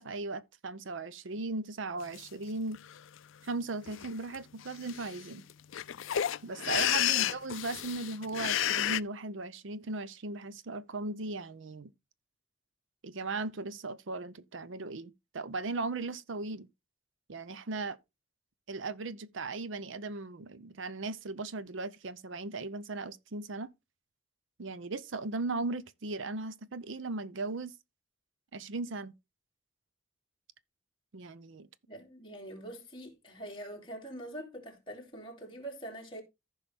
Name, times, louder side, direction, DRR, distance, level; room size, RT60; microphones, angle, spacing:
voice 1, 0.0-2.8 3.4-5.4 6.4-11.9 13.0-16.7 17.3-18.0 18.7-23.7 24.6-27.7 28.5-29.1 31.1-31.7, right 3 dB, 70° right, 0.6 m, -37 dB
sound 1, 2.2-2.3 2.7-3.2 3.9-4.1 4.3-4.4 4.6-9.0, left 11 dB, 75° left, 0.4 m, -31 dB
voice 2, 31.9-36.2, right 1 dB, 25° left, 3.0 m, -44 dB
14.5 x 5.7 x 3.5 m
head